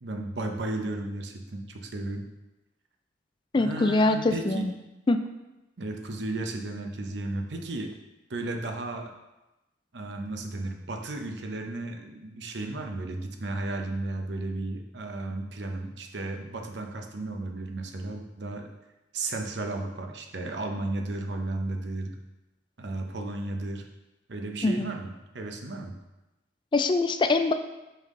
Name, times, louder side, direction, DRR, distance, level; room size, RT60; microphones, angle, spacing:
voice 1, 0.0-2.3 3.6-4.7 5.8-7.9 8.3-9.1 9.9-18.7 19.1-22.2 22.8-23.8 24.3-26.0, right 2 dB, 75° right, 4 dB, 0.7 m, -34 dB
voice 2, 3.5-4.7 5.1-5.2 24.6-24.9 26.7-27.5, left 2 dB, 25° left, 9 dB, 0.3 m, -23 dB
5.6 x 5.5 x 3.7 m, 1.0 s
head